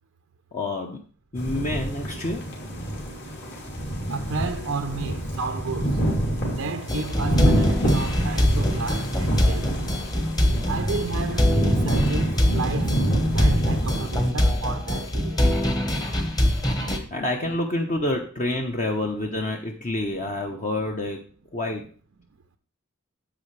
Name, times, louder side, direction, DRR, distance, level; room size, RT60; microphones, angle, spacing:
voice 1, 0.5-1.0 1.3-2.4 17.1-21.2 21.5-21.9, left 1 dB, 35° left, 0.9 m, -28 dB
sound 1, 1.4-14.3, right 1 dB, 55° left, 3.1 m, -26 dB
voice 2, 4.1-6.0 6.5-9.7 10.7-13.0 13.3-15.4, right 4 dB, 85° right, 0.7 m, -32 dB
sound 2, 6.9-17.0, left 1 dB, 20° left, 1.2 m, -24 dB
10.0 x 7.5 x 3.3 m
head